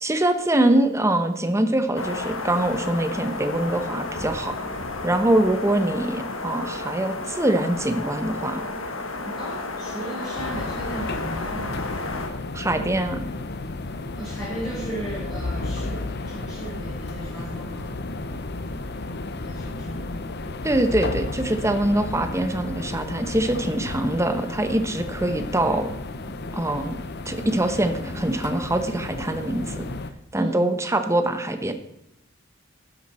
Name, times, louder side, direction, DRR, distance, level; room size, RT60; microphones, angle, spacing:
voice 1, 0.0-4.6 5.0-8.6 12.5-13.3 20.6-25.9 26.5-26.9 27.3-29.9 30.3-31.7, right 1 dB, 15° right, 8 dB, 1.0 m, -23 dB
sound 1, 2.0-12.3, left 2 dB, 80° left, 1.6 m, -32 dB
voice 2, 9.2-11.8 14.2-17.9 19.4-20.1 30.3-30.6, right 1 dB, ahead, -9 dB, 4.7 m, -35 dB
sound 2, 10.4-30.1, left 2 dB, 55° left, 0.8 m, -33 dB
12.0 x 10.5 x 4.3 m, 0.82 s
head